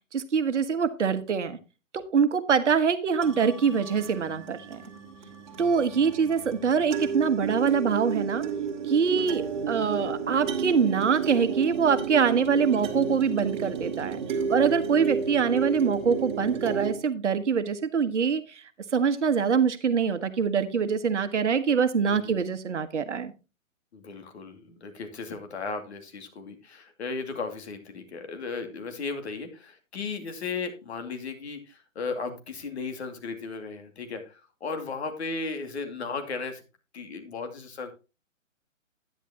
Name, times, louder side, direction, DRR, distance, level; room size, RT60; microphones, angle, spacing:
voice 1, 0.1-1.6 1.9-4.8 5.6-8.4 8.9-14.2 14.5-18.6 18.9-23.3, right 6 dB, 60° right, 10 dB, 1.4 m, -24 dB
sound 1, 3.2-16.9, right 6 dB, 35° right, 2.4 m, -32 dB
voice 2, 22.0-22.5 23.9-36.6 36.9-37.9, left 4 dB, 55° left, 6 dB, 2.4 m, -36 dB
10.5 x 10.0 x 2.9 m, 0.29 s
figure-of-eight pair, 135°, 40 cm